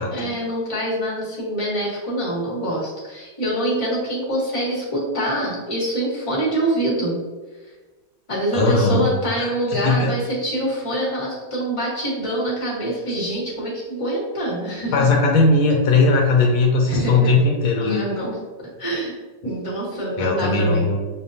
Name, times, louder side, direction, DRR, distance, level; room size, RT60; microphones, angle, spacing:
voice 1, 0.0-7.2 8.3-14.9 16.9-17.3 17.8-20.9, right 1 dB, 25° left, -6 dB, 0.7 m, -25 dB
voice 2, 8.5-9.1 9.4-10.1 14.9-18.0 20.2-21.0, left 3 dB, 85° left, -1 dB, 1.4 m, -18 dB
6.1 x 2.2 x 2.6 m, 1.3 s
omnidirectional pair, 2.2 m